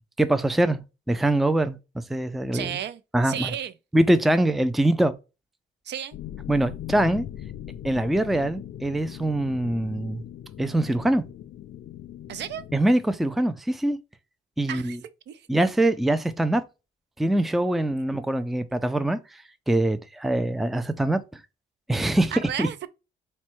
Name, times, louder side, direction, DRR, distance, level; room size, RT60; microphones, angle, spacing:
voice 1, 0.0-2.8 3.1-3.6 3.9-5.1 6.5-7.3 7.8-10.2 10.6-11.2 12.7-14.0 14.6-15.0 15.5-16.6 17.2-21.4 21.9-22.3 22.6-22.7, right 1 dB, ahead, 0.4 m, -23 dB
voice 2, 2.5-3.0 3.2-3.7 5.9-6.2 12.3-12.6 14.7-15.0 15.3-15.4 22.3-22.9, right 9 dB, 60° right, 0.5 m, -32 dB
sound 1, 6.1-12.8, left 11 dB, 65° left, 0.4 m, -40 dB
4.2 x 2.2 x 4.5 m
cardioid pair, 90°, 20 cm